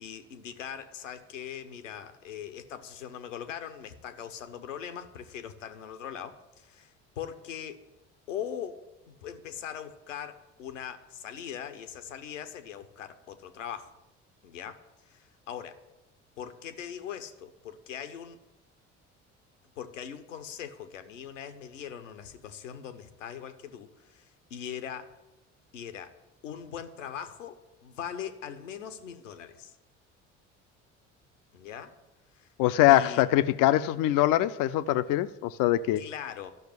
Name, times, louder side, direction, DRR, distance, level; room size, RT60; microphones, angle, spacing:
voice 1, 0.0-7.8 8.3-8.8 9.1-13.9 14.4-15.8 16.4-18.4 19.8-25.1 25.7-26.1 26.4-29.8 31.5-31.9 32.3-32.5 32.9-33.2 35.9-36.5, left 8 dB, 85° left, 1.1 m, -41 dB
voice 2, 32.6-36.0, left 14 dB, 60° left, 0.7 m, -23 dB
12.0 x 6.7 x 9.6 m
hypercardioid pair, 55°, 37 cm